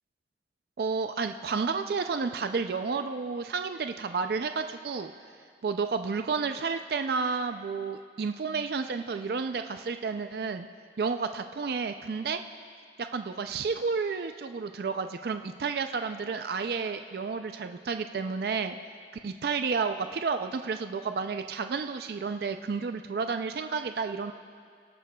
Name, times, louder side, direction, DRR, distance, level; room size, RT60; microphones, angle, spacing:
voice 1, 0.8-5.1 5.6-10.7 11.0-12.4 13.0-18.8 19.2-24.3, right 5 dB, 60° right, 8 dB, 0.4 m, -31 dB
23.5 x 12.5 x 2.3 m, 2.1 s
head